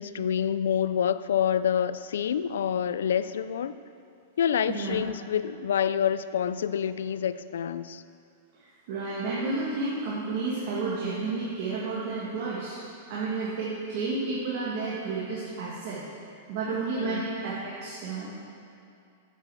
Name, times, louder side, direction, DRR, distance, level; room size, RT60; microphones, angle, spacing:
voice 1, 0.0-3.7 4.4-8.0 17.0-17.3, left 8 dB, 90° left, 14 dB, 0.4 m, -27 dB
voice 2, 8.9-12.8 13.1-16.0 16.5-18.3, right 3 dB, 45° right, -8 dB, 2.1 m, -31 dB
8.9 x 8.3 x 7.0 m, 2.5 s
supercardioid pair, 165°, 0 cm